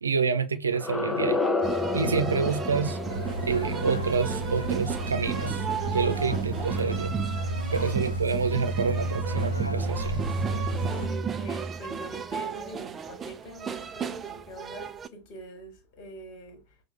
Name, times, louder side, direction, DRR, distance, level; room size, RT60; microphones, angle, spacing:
voice 1, 0.0-1.4 1.9-3.0 3.4-5.7 5.9-7.1 7.7-10.3, right 5 dB, 75° right, 0.7 m, -28 dB
sound 1, 0.7-5.6, left 3 dB, 5° left, 0.7 m, -31 dB
sound 2, 1.6-15.1, right 4 dB, 20° right, 0.4 m, -32 dB
sound 3, 3.1-11.1, right 1 dB, 85° left, 0.5 m, -35 dB
voice 2, 10.7-16.8, right 1 dB, 40° left, 1.6 m, -43 dB
6.2 x 2.3 x 3.2 m
figure-of-eight pair, 90°, 0 cm